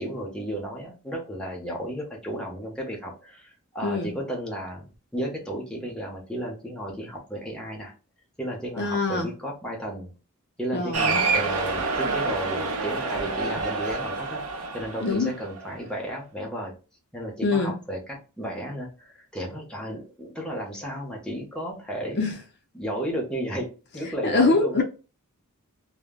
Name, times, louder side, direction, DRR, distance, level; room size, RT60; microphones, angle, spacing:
voice 1, 0.0-7.9 8.4-10.1 10.6-14.4 14.7-16.7 17.1-22.3 22.7-24.8, equal, 5° left, 0.7 m, -33 dB
voice 2, 3.8-4.1 8.8-9.3 10.7-11.2 15.0-15.3 17.4-17.7 22.2-22.4 24.1-24.8, left 3 dB, 50° left, 0.5 m, -24 dB
Cheering, 10.9-15.7, right 4 dB, 80° right, 0.6 m, -27 dB
2.1 x 2.0 x 3.5 m
head